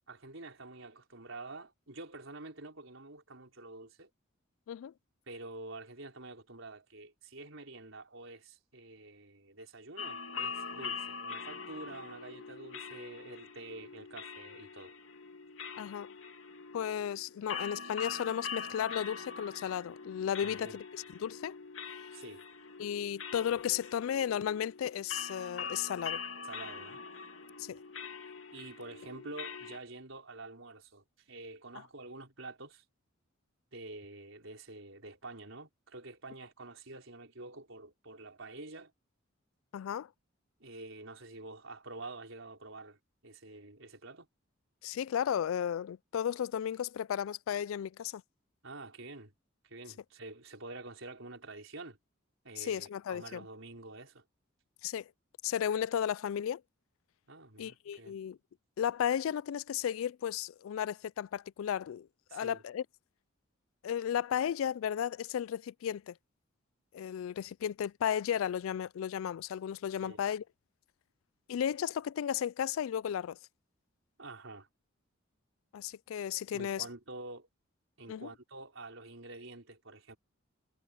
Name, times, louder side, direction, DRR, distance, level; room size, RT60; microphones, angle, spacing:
voice 1, 0.1-4.1 5.3-14.9 20.4-20.8 22.1-22.4 26.4-27.0 28.5-32.8 33.7-38.9 40.6-44.3 48.6-49.3 49.6-52.0 52.4-54.2 57.3-58.2 62.3-62.6 69.9-70.2 74.2-74.7 76.5-77.5 78.0-80.2, right 2 dB, 70° right, 5.0 m, -48 dB
sound 1, 10.0-29.8, left 5 dB, 70° left, 2.7 m, -43 dB
voice 2, 15.8-16.1 16.7-21.5 22.8-26.2 27.6-27.8 39.7-40.1 44.8-48.2 52.6-53.4 54.8-55.1 55.4-56.6 57.6-58.4 58.8-62.8 63.8-66.1 66.9-70.4 71.5-73.4 75.7-76.9 78.1-78.3, left 9 dB, 85° left, 0.3 m, -34 dB
head